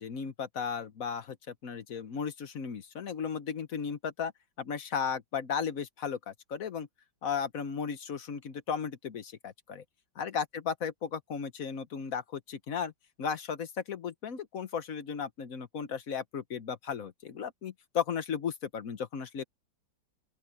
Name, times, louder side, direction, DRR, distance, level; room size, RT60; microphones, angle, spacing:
voice 1, 0.0-4.3 4.6-6.9 7.2-9.8 10.1-12.9 13.2-19.4, left 6 dB, 50° left, 1.3 m, -35 dB
open air
omnidirectional pair, 2.1 m